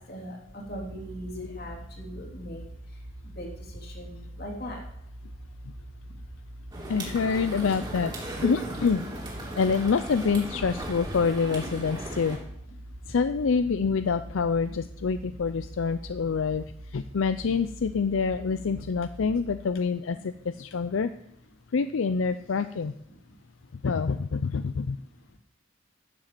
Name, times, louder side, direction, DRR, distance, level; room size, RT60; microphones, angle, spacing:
voice 1, 0.0-4.8 12.1-12.2 13.0-13.2 22.5-22.6 23.1-23.4 24.5-24.6 24.9-25.0, equal, 50° left, 0 dB, 3.2 m, -41 dB
sound 1, 0.6-19.6, right 1 dB, 85° right, 4.5 m, -44 dB
sound 2, 6.7-12.4, right 1 dB, 25° right, 3.0 m, -37 dB
voice 2, 6.9-8.1 8.4-9.0 9.5-12.4 13.1-16.7 16.9-21.1 21.7-22.9 23.8-25.0, left 5 dB, 80° left, 11 dB, 0.5 m, -26 dB
11.5 x 7.3 x 7.6 m, 0.75 s
head